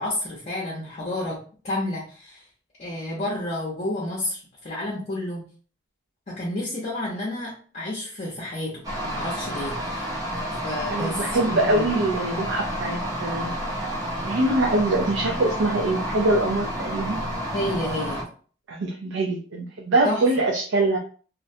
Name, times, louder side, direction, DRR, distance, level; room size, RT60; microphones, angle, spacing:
voice 1, 0.0-1.4 1.6-2.4 2.8-5.4 6.3-10.2 10.6-11.9 17.5-18.2 20.0-20.2, left 1 dB, 40° left, -4 dB, 0.6 m, -30 dB
sound 1, 8.8-18.2, equal, 20° right, 0.5 m, -30 dB
voice 2, 10.9-13.5 14.2-17.2 18.7-21.0, right 2 dB, 85° right, 0 dB, 0.4 m, -23 dB
2.5 x 2.1 x 2.6 m, 0.42 s
head